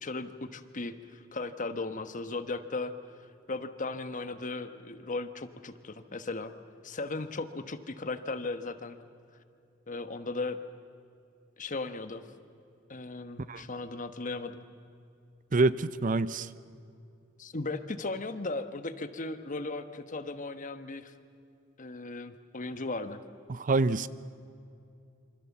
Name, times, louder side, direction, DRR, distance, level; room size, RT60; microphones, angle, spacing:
voice 1, 0.0-2.9 3.2-6.5 6.8-9.0 9.9-10.6 11.6-12.2 12.9-14.6 17.4-21.1 21.8-23.2, left 3 dB, 40° left, 10 dB, 1.2 m, -37 dB
voice 2, 15.5-16.5 23.5-24.1, right 3 dB, 40° right, 16 dB, 0.6 m, -26 dB
27.0 x 25.5 x 7.2 m, 2.5 s
head